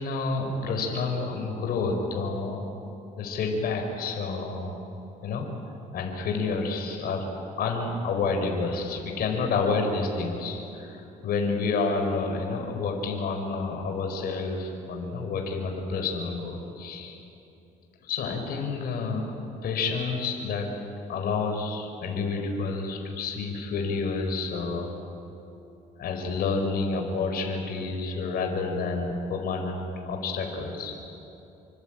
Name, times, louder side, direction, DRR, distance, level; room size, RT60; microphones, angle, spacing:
voice 1, 0.0-2.7 3.2-4.8 5.2-5.5 5.9-7.3 7.6-17.2 18.0-19.3 19.6-20.7 21.1-24.9 26.0-30.9, left 4 dB, 65° left, 3 dB, 4.7 m, -29 dB
27.5 x 23.5 x 8.9 m, 2.9 s
cardioid pair, 110°, 17 cm